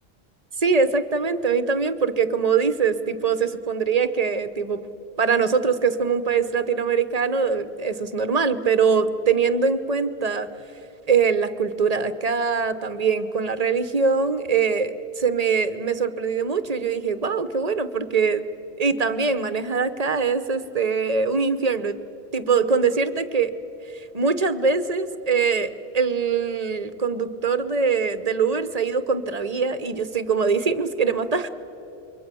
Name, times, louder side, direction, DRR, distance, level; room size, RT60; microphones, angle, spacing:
voice 1, 0.6-4.8 5.2-10.5 11.1-18.4 18.8-22.0 22.3-23.5 24.1-31.5, right 5 dB, 40° right, 12 dB, 1.0 m, -23 dB
27.5 x 23.0 x 6.9 m, 3.0 s
omnidirectional pair, 1.0 m